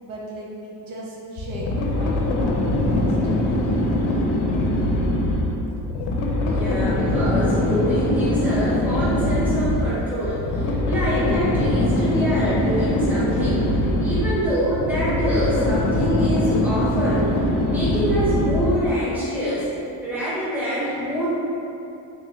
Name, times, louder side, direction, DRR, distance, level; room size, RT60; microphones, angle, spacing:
voice 1, 0.0-3.3, right 1 dB, 80° right, -4 dB, 0.8 m, -37 dB
sound 1, 1.4-19.0, left 1 dB, 80° left, 0.6 m, -22 dB
voice 2, 6.4-13.7 14.0-17.3 17.7-19.7 20.0-21.3, equal, 5° right, -10 dB, 0.8 m, -25 dB
3.3 x 3.1 x 2.8 m, 2.9 s
cardioid pair, 125°, 47 cm